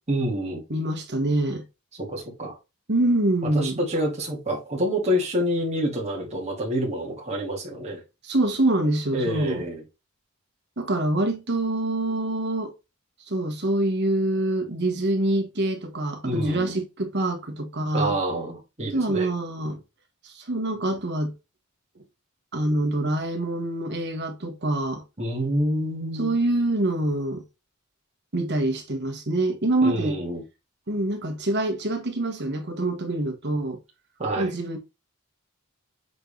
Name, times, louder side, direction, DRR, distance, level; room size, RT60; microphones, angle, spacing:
voice 1, 0.1-0.6 2.0-2.6 3.5-8.0 9.1-9.8 16.2-16.8 17.9-19.3 25.2-26.3 29.8-30.4 34.2-34.5, equal, 30° right, 2.4 m, -27 dB
voice 2, 0.7-1.6 2.9-3.8 8.2-9.7 10.8-12.7 13.3-18.2 18.9-19.8 20.2-21.3 22.5-25.0 26.2-27.4 28.3-30.2 30.9-33.8 34.4-34.8, right 1 dB, 55° right, 1.7 m, -25 dB
7.9 x 3.9 x 3.4 m
head